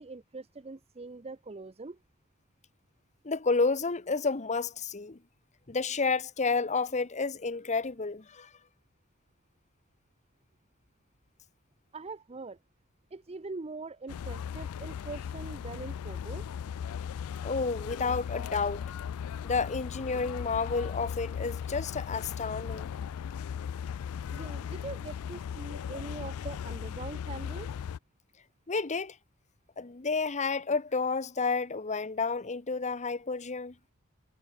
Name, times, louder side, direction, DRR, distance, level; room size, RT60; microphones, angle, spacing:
voice 1, 0.0-2.0 11.9-12.6 13.1-16.5 24.3-27.8, right 3 dB, 30° right, 0.6 m, -42 dB
voice 2, 3.2-5.2 5.7-8.5 17.4-18.9 19.4-22.9 28.7-29.2 29.8-33.7, left 4 dB, 35° left, 0.9 m, -30 dB
sound 1, 14.1-28.0, left 8 dB, 80° left, 0.3 m, -37 dB
head